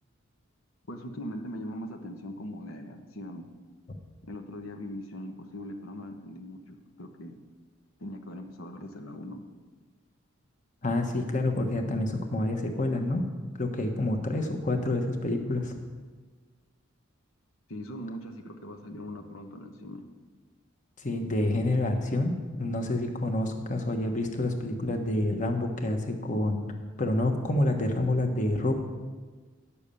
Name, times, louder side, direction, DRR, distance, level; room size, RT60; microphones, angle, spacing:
voice 1, 0.9-3.5 4.2-7.4 8.0-9.4 17.7-20.0, left 1 dB, 80° left, 4 dB, 1.0 m, -40 dB
voice 2, 10.8-13.2 13.6-15.7 21.0-22.3 22.6-26.7 27.0-28.7, left 1 dB, 40° left, 4 dB, 1.1 m, -28 dB
10.0 x 6.9 x 6.8 m, 1.4 s
head